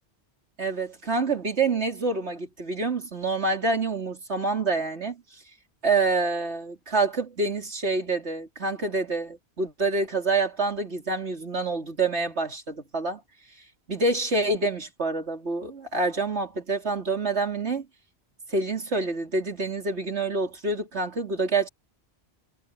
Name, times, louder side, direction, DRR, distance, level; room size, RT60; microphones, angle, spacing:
voice 1, 0.6-5.2 5.8-13.2 13.9-17.9 18.5-21.7, right 3 dB, 80° right, 3.7 m, -27 dB
omnidirectional pair, 1.1 m